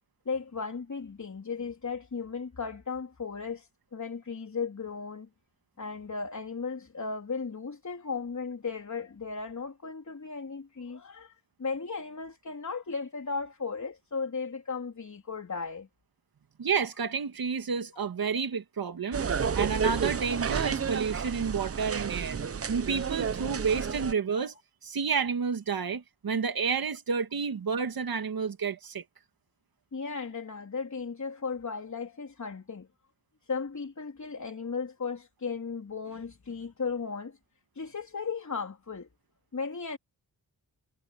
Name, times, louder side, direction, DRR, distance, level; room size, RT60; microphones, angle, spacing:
voice 1, 0.3-5.3 5.8-15.9 23.9-24.0 29.9-32.9 33.4-37.4 37.7-39.1 39.5-40.0, left 5 dB, 50° left, 3.8 m, -36 dB
voice 2, 16.6-19.2 19.5-22.4 22.7-24.5 24.8-29.0, right 6 dB, 70° right, 1.8 m, -30 dB
sound 1, 19.1-24.1, right 6 dB, 40° right, 0.7 m, -31 dB
cardioid pair, 55°, 38 cm